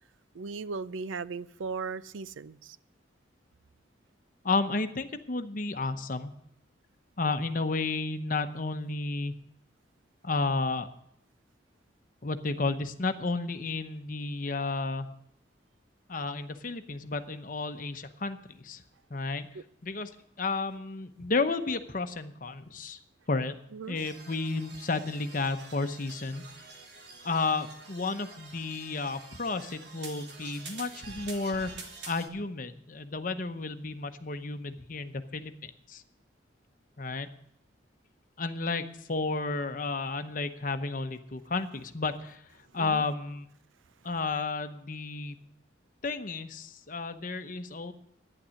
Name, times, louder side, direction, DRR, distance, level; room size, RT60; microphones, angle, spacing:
voice 1, 0.3-2.8 19.5-19.6 23.7-24.0 42.7-43.0, right 4 dB, 85° right, 0.5 m, -37 dB
voice 2, 4.4-6.3 7.2-9.3 10.2-10.9 12.2-15.1 16.1-18.8 19.1-19.5 19.8-20.1 20.4-23.0 23.3-23.5 23.9-26.4 27.2-31.7 32.1-36.0 37.0-37.3 38.4-42.4 42.7-43.5 44.0-45.4 46.0-47.9, left 3 dB, 45° left, 0.8 m, -32 dB
sound 1, 23.9-32.3, right 3 dB, 60° right, 1.6 m, -47 dB
11.5 x 9.8 x 6.4 m
head